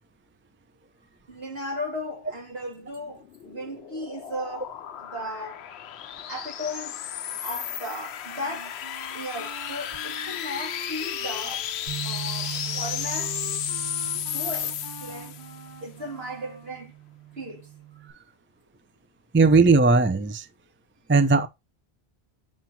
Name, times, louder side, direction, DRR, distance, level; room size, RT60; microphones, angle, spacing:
voice 1, 1.3-4.7 5.0-5.7 6.3-7.0 7.4-8.8 9.1-11.7 12.0-13.5 14.2-15.4 15.8-16.9 17.4-17.6, equal, 70° right, 2.6 m, -36 dB
sound 1, 3.0-15.6, left 10 dB, 80° left, 0.9 m, -33 dB
Wind instrument woodwind instrument, 8.2-16.8, right 2 dB, 50° right, 3.6 m, -45 dB
Bass guitar, 11.9-18.1, right 15 dB, 85° right, 3.8 m, -40 dB
voice 2, 19.3-20.4 21.1-21.5, right 3 dB, 15° right, 0.5 m, -18 dB
7.6 x 5.7 x 2.8 m
omnidirectional pair, 1.1 m